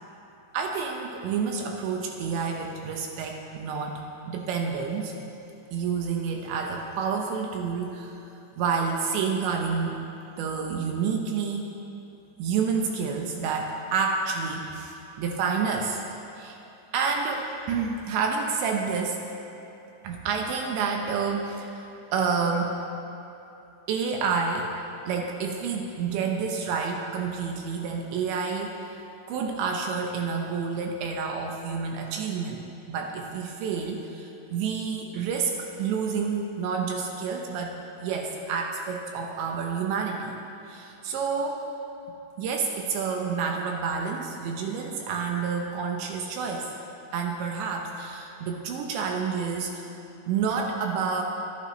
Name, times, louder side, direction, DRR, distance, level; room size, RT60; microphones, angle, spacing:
voice 1, 0.5-5.1 5.7-8.2 8.6-10.0 10.4-11.7 12.4-16.0 16.4-16.6 16.9-19.2 20.0-21.9 22.1-22.7 23.9-24.7 25.1-28.8 29.3-37.8 38.0-40.4 40.7-41.7 42.4-46.7 47.1-49.9 50.3-51.2, right 5 dB, 75° right, 2 dB, 3.0 m, -29 dB
22.5 x 11.5 x 3.2 m, 2.9 s
omnidirectional pair, 5.6 m